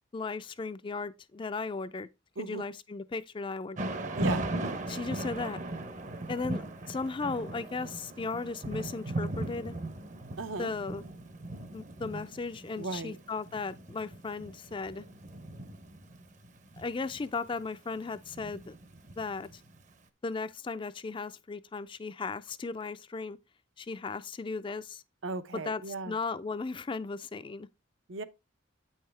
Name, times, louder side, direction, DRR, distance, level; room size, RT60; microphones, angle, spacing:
voice 1, 0.1-2.1 2.4-3.8 4.9-5.6 6.3-9.7 10.6-11.0 11.7-15.1 16.8-18.8 19.2-19.6 20.2-23.4 23.8-25.0 25.7-27.7, left 4 dB, 25° left, 0.3 m, -36 dB
Thunder / Rain, 3.8-19.8, right 2 dB, 40° right, 0.7 m, -38 dB
voice 2, 4.1-4.5 10.4-10.7 12.8-13.2 25.2-26.2 28.1-28.2, right 3 dB, 75° right, 0.7 m, -36 dB
8.6 x 5.5 x 3.2 m
head